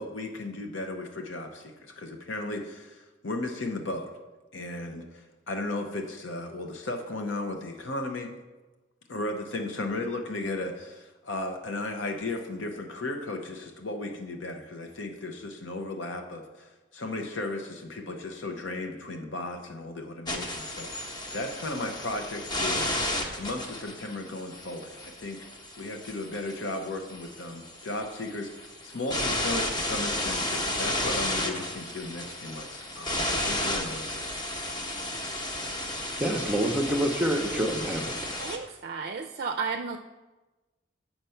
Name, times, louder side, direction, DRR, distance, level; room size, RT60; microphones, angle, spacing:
voice 1, 0.0-4.1 4.5-8.3 9.1-23.0 23.4-25.5 25.8-34.2, left 2 dB, 85° left, 4 dB, 0.8 m, -35 dB
sound 1, 20.3-38.6, left 1 dB, 25° left, 0.9 m, -33 dB
voice 2, 36.2-38.5, right 1 dB, 5° right, 1 dB, 0.6 m, -27 dB
voice 3, 38.4-40.0, right 5 dB, 55° right, 4 dB, 0.4 m, -33 dB
7.8 x 5.9 x 5.6 m, 1.2 s
head